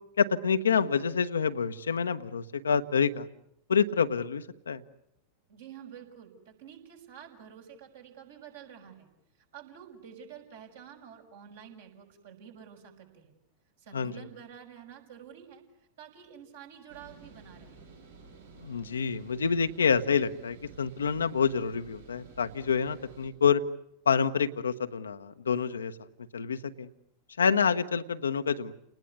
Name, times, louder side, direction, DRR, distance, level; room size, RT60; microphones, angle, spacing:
voice 1, 0.2-3.3 3.7-4.8 13.9-14.1 18.6-23.6 24.1-26.0 26.3-26.9 27.4-28.7, left 6 dB, 70° left, 10 dB, 1.1 m, -27 dB
voice 2, 5.5-9.1 9.5-13.3 13.8-15.6 16.0-17.8, right 8 dB, 60° right, 2 dB, 5.9 m, -49 dB
sound 1, 16.9-23.3, right 4 dB, 75° right, 5.9 m, -52 dB
30.0 x 20.0 x 9.6 m, 0.78 s
figure-of-eight pair, 90°, 0 cm